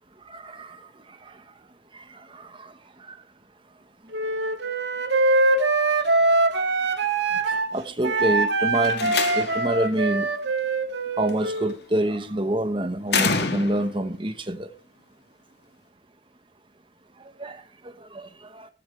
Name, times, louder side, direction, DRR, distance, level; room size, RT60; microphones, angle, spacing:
voice 1, 0.3-0.8 2.3-2.7 3.1-3.2 7.7-10.3 11.2-14.7 17.4-17.6 18.1-18.7, right 1 dB, 30° right, 1.2 m, -27 dB
Wind instrument woodwind instrument, 4.1-7.7 8.0-11.8, right 3 dB, 80° right, 1.7 m, -23 dB
Slam, 8.7-9.8 11.3-11.7 13.1-14.0, left 5 dB, 70° left, 1.6 m, -27 dB
14.0 x 13.5 x 3.4 m
head